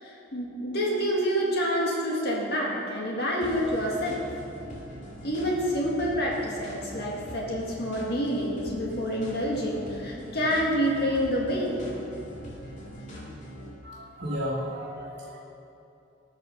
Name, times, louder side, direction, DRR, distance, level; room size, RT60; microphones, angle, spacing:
voice 1, 0.0-4.2 5.2-11.8, equal, 55° left, -3 dB, 1.9 m, -28 dB
sound 1, 3.4-13.7, equal, 40° left, 2.5 m, -42 dB
voice 2, 13.8-15.4, equal, 55° right, -6 dB, 1.6 m, -33 dB
19.5 x 6.6 x 5.3 m, 2.8 s
head